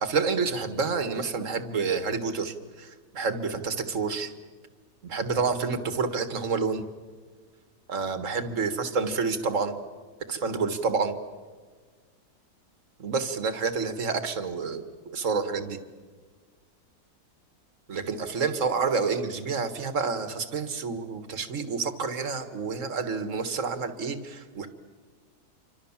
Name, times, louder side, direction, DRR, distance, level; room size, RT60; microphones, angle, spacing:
voice 1, 0.0-4.3 5.0-6.9 7.9-9.8 10.3-11.2 13.0-15.8 17.9-24.7, right 5 dB, 50° right, 9 dB, 2.1 m, -29 dB
28.5 x 25.5 x 7.3 m, 1.5 s
omnidirectional pair, 1.7 m